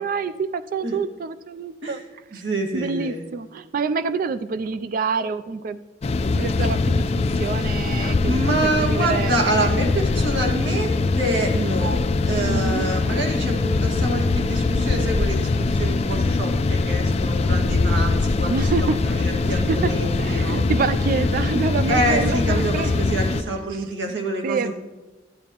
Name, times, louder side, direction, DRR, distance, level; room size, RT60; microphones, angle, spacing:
voice 1, 0.0-2.0 2.3-2.4 2.7-5.8 6.2-7.1 7.3-9.5 12.5-12.9 18.5-19.9 20.2-23.8 24.4-24.7, right 5 dB, 50° right, 13 dB, 0.3 m, -27 dB
voice 2, 2.4-3.2 8.3-18.7 19.0-20.6 21.9-24.7, right 1 dB, 90° right, 0 dB, 1.7 m, -26 dB
sound 1, 6.0-23.4, left 3 dB, 35° left, 0.4 m, -22 dB
13.0 x 8.9 x 2.9 m, 1.1 s
head